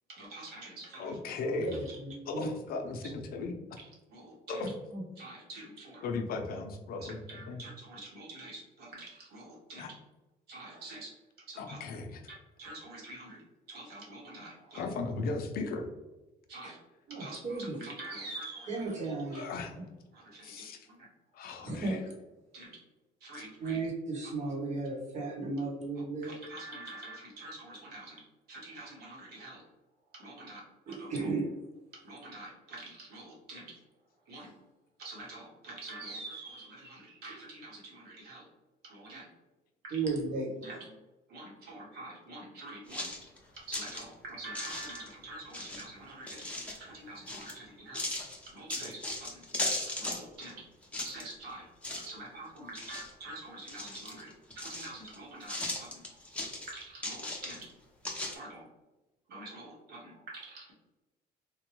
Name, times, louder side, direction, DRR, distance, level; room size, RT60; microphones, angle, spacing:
voice 1, 0.1-1.2 3.0-3.1 4.1-4.7 5.2-6.0 7.0-10.0 10.5-11.8 12.3-14.9 16.5-16.8 17.1-19.5 20.1-21.1 22.5-22.8 23.2-23.8 24.2-24.3 26.2-28.2 28.5-29.6 30.1-30.6 30.9-31.3 31.9-33.7 34.2-34.5 35.0-38.5 38.8-39.3 39.8-40.0 40.6-40.9 41.3-43.1 43.6-48.2 48.4-50.6 51.0-51.7 52.0-56.2 56.7-57.7 58.3-58.7 59.3-60.7, right 2 dB, 70° right, -3 dB, 1.2 m, -46 dB
voice 2, 1.0-1.8 2.3-3.5 4.5-4.7 6.0-7.2 7.5-7.6 9.8-9.9 11.6-12.2 14.7-15.9 19.3-19.7 20.4-20.8 21.3-22.0, left 3 dB, 60° left, 4 dB, 0.6 m, -36 dB
voice 3, 2.0-2.5 4.6-5.0 17.1-17.8 18.7-19.4 21.6-21.9 23.6-26.3 30.9-31.4 39.9-40.7, right 3 dB, 45° right, -1 dB, 1.1 m, -35 dB
sound 1, 42.9-44.0 44.5-45.1 45.5-46.8 47.3-47.6 47.9-50.5 50.8-51.5 51.8-52.3 52.6-53.3 53.7-55.2 55.4-57.7 58.0-58.3, left 2 dB, 5° left, 0.7 m, -37 dB
3.3 x 2.2 x 3.0 m, 1.1 s
cardioid pair, 110°, 17 cm